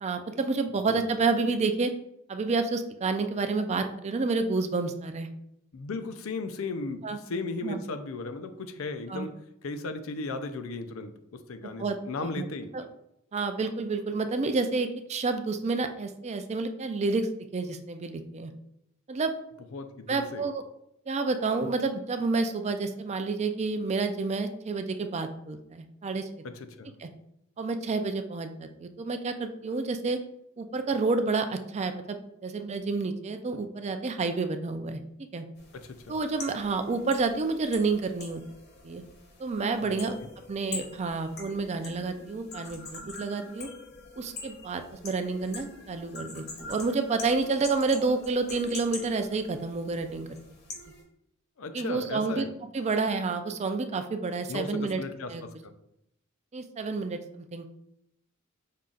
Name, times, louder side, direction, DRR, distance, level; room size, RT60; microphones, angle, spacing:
voice 1, 0.0-1.9 2.3-5.3 7.0-7.2 7.6-7.8 9.1-9.3 11.8-12.4 12.7-12.8 13.3-18.5 19.1-19.3 20.1-20.6 21.1-26.3 27.0-27.1 27.6-30.2 30.6-35.0 35.3-35.5 36.1-38.4 38.8-39.0 39.4-40.2 40.5-43.7 44.2-50.3 51.7-52.4 52.7-55.0 55.3-55.4 56.5-57.7, right 3 dB, 35° right, 8 dB, 0.4 m, -29 dB
voice 2, 5.7-9.4 9.6-12.7 19.7-20.5 26.4-26.9 35.7-36.2 39.8-40.3 51.6-52.5 54.5-55.7, left 3 dB, 80° left, 9 dB, 0.5 m, -36 dB
sound 1, 35.6-51.0, left 3 dB, 50° left, 1.1 m, -44 dB
5.5 x 2.4 x 3.8 m, 0.80 s
head